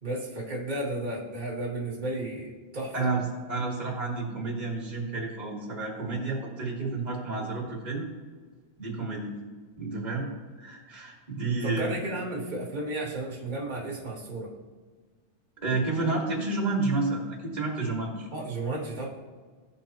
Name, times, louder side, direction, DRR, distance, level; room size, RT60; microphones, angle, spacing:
voice 1, 0.0-3.1 11.6-14.5 18.3-19.1, right 1 dB, 85° right, -5 dB, 0.4 m, -33 dB
voice 2, 3.5-8.0 8.8-9.3 9.8-10.3 10.6-11.9 15.6-18.3, right 3 dB, 20° right, -3 dB, 1.2 m, -30 dB
15.5 x 5.4 x 3.0 m, 1.5 s
omnidirectional pair, 3.6 m